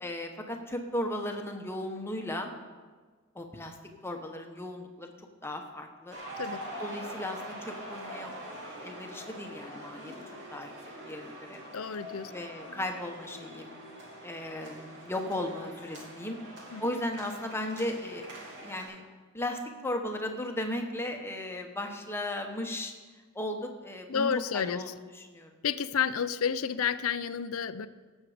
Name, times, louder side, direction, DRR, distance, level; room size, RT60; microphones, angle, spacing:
voice 1, 0.0-2.5 3.3-3.8 4.0-5.1 5.4-6.2 6.8-10.1 10.5-10.7 11.0-11.6 12.3-13.7 14.2-16.4 16.8-19.0 19.3-22.9 23.3-25.6, left 1 dB, 10° left, 3 dB, 1.1 m, -36 dB
sound 1, 6.1-18.8, right 1 dB, 55° right, 2.9 m, -44 dB
voice 2, 11.7-12.3 16.7-16.8 24.1-24.8 25.6-27.9, left 7 dB, 65° left, 13 dB, 0.5 m, -30 dB
17.5 x 7.4 x 5.0 m, 1.4 s
head